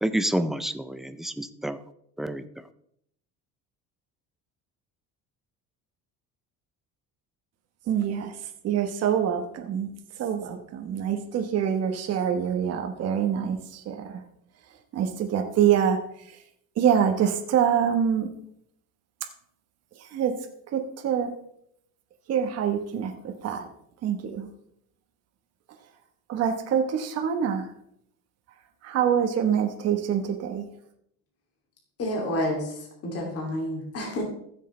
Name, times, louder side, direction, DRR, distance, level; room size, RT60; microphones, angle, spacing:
voice 1, 0.0-1.8 2.2-2.6, right 1 dB, ahead, 11 dB, 0.4 m, -29 dB
voice 2, 7.9-8.3 8.6-9.9 10.2-14.2 14.9-16.0 16.8-18.3 20.0-20.3 20.7-21.3 22.3-23.7 24.0-24.5 26.3-27.7 28.8-30.6, right 8 dB, 50° right, 4 dB, 1.1 m, -25 dB
voice 3, 32.0-34.2, left 1 dB, 45° left, -1 dB, 2.6 m, -29 dB
15.0 x 6.6 x 3.2 m, 0.71 s
cardioid pair, 140°, 33 cm